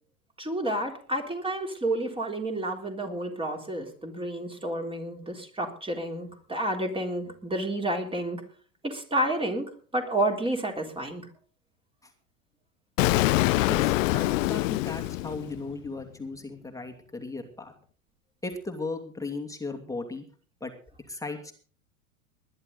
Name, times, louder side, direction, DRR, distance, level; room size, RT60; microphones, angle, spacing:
voice 1, 0.4-8.4 8.8-11.3, right 1 dB, 10° right, 2 dB, 3.7 m, -30 dB
Explosion, 13.0-15.9, left 19 dB, 65° left, 0.7 m, -25 dB
voice 2, 13.7-17.7 18.4-20.2 20.6-20.7 21.1-21.5, left 3 dB, 10° left, 3 dB, 2.5 m, -36 dB
20.5 x 11.0 x 4.0 m, 0.42 s
hypercardioid pair, 100°, 42 cm